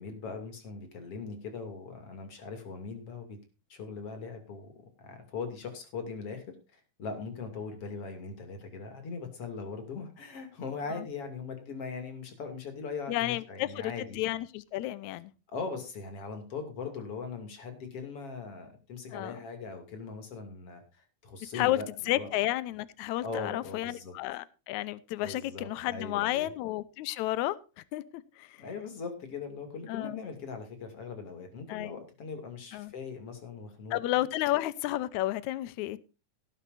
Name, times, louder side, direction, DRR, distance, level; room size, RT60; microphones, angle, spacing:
voice 1, 0.0-3.4 3.7-4.7 5.0-14.2 15.5-22.3 23.2-24.1 25.2-26.5 28.6-34.0, left 4 dB, 45° left, 3.4 m, -40 dB
voice 2, 13.1-15.3 19.1-19.4 21.5-21.8 22.1-28.6 29.9-30.2 31.7-31.9 32.7-32.9 33.9-36.0, left 15 dB, 75° left, 2.0 m, -32 dB
17.5 x 10.0 x 2.6 m
omnidirectional pair, 3.8 m